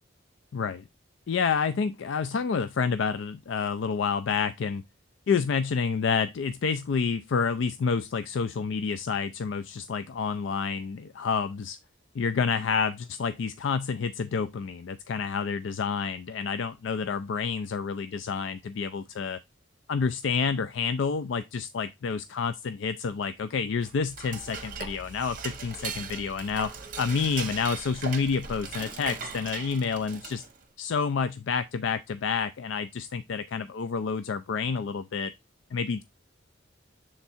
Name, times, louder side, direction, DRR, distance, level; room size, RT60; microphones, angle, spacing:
voice 1, 0.5-0.8 1.3-4.8 5.3-11.8 12.2-19.4 19.9-26.7 27.0-30.4 30.8-35.3 35.7-36.0, left 5 dB, 70° left, 0.4 m, -29 dB
Dishes pots and pans / Cutlery silverware, 23.8-30.6, right 5 dB, 40° right, 0.9 m, -39 dB
7.2 x 3.6 x 4.1 m
head